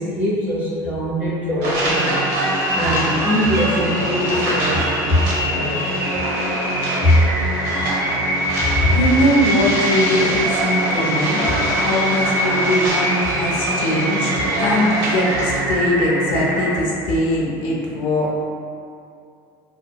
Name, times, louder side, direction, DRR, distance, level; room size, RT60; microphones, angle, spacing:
voice 1, 0.0-2.0 2.7-5.9 7.0-7.2, left 1 dB, 20° right, -10 dB, 1.0 m, -21 dB
sound 1, 1.6-15.6, right 1 dB, 75° right, 0.7 m, -25 dB
sound 2, 1.7-16.8, right 1 dB, 35° right, 0.5 m, -24 dB
voice 2, 8.8-14.3 14.6-18.5, equal, 65° left, -3 dB, 0.4 m, -21 dB
2.6 x 2.2 x 2.2 m, 2.5 s
cardioid pair, 155°, 10 cm